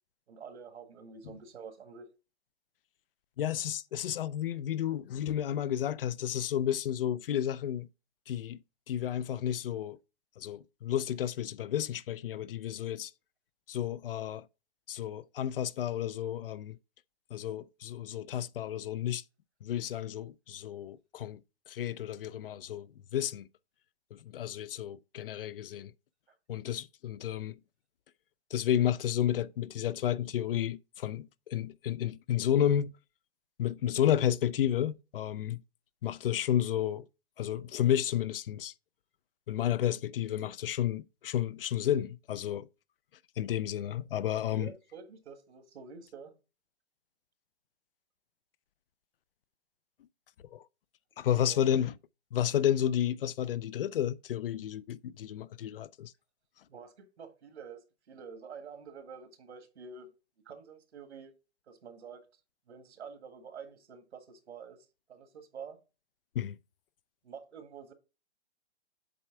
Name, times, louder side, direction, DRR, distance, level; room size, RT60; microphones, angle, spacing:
voice 1, 0.3-2.1 44.5-46.3 51.4-51.6 56.7-60.1 60.4-61.3 61.7-62.2 62.7-64.8 65.1-65.8 67.2-67.9, right 6 dB, 80° right, 1.7 m, -48 dB
voice 2, 3.4-7.9 8.3-8.6 8.9-10.0 10.4-13.1 13.7-14.5 14.9-16.8 17.3-19.2 19.6-21.4 21.7-23.5 24.1-25.9 26.5-27.6 28.5-32.9 33.6-35.6 36.0-37.1 37.4-38.7 39.5-42.7 43.4-44.7 50.5-50.6 51.2-51.9 52.3-56.1 66.3-66.6, left 10 dB, 60° left, 0.4 m, -31 dB
7.6 x 3.3 x 4.6 m
hypercardioid pair, 155°, 33 cm